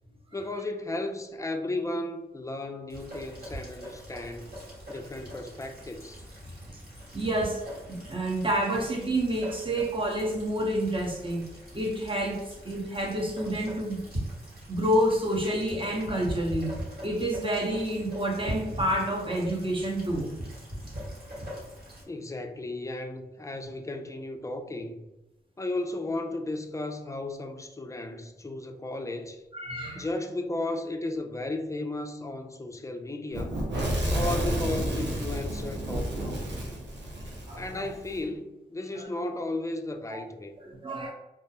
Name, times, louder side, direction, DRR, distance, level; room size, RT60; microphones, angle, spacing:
voice 1, 0.3-4.5 4.9-6.2 22.1-25.0 25.6-29.4 30.0-33.6 34.1-36.6 37.6-40.5, left 2 dB, 15° left, 6 dB, 0.3 m, -34 dB
Rain, 2.9-22.0, equal, 60° right, 1.2 m, -41 dB
voice 2, 7.1-11.5 11.7-14.0 14.7-16.7 17.0-20.4 29.5-30.1 37.5-37.9 39.0-39.1 40.1-40.2 40.6-41.1, right 1 dB, 30° right, 0 dB, 0.7 m, -29 dB
Fire / Explosion, 33.3-38.2, right 1 dB, 85° right, 0.6 m, -31 dB
2.3 x 2.1 x 2.8 m, 0.98 s
cardioid pair, 55°, 18 cm